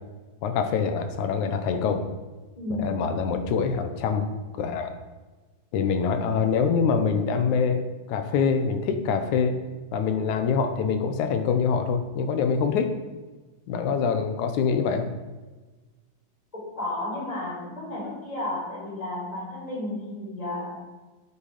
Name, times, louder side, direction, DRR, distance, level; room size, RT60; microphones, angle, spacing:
voice 1, 0.4-2.0 2.7-4.3 4.5-5.0 5.7-9.6 9.9-12.9 13.7-15.1, left 6 dB, 90° left, 8 dB, 2.5 m, -25 dB
voice 2, 2.6-2.9 16.5-20.8, left 1 dB, 10° left, -5 dB, 4.4 m, -32 dB
13.0 x 8.1 x 5.1 m, 1.3 s
omnidirectional pair, 3.3 m